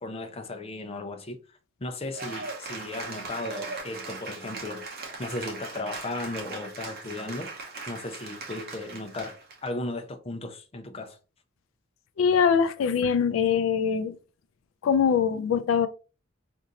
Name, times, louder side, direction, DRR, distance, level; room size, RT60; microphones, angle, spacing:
voice 1, 0.0-4.9 5.2-7.5 7.9-9.4 9.6-11.2, left 2 dB, 30° left, 0.5 m, -36 dB
Cheering / Applause, 2.1-9.7, right 3 dB, 50° right, 0.8 m, -39 dB
voice 2, 12.2-14.2 14.8-15.9, left 7 dB, 85° left, 0.3 m, -23 dB
3.9 x 2.6 x 2.8 m
head